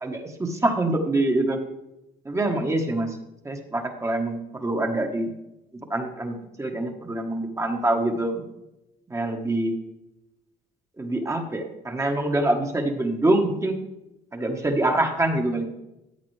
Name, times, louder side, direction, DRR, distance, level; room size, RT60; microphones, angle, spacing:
voice 1, 0.0-1.6 2.2-3.1 3.4-5.3 5.9-8.4 9.1-9.7 11.0-13.7 14.3-15.7, right 1 dB, 15° right, 3 dB, 1.3 m, -25 dB
13.5 x 8.5 x 3.3 m, 0.92 s
cardioid pair, 110°, 17 cm